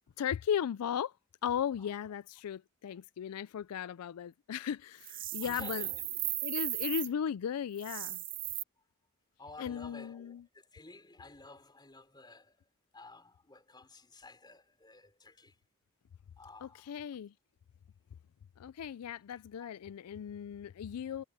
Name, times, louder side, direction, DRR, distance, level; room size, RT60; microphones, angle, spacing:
voice 1, 0.2-1.1 1.4-5.9 6.4-8.2 9.6-10.4 16.6-17.3 18.6-21.2, left 8 dB, 80° left, 0.4 m, -36 dB
sound 1, 5.0-7.1 7.7-8.6, right 14 dB, 40° right, 0.8 m, -36 dB
voice 2, 5.4-6.0 9.4-12.6 12.9-15.6 16.4-17.0 19.6-19.7, left 3 dB, 20° left, 4.0 m, -53 dB
head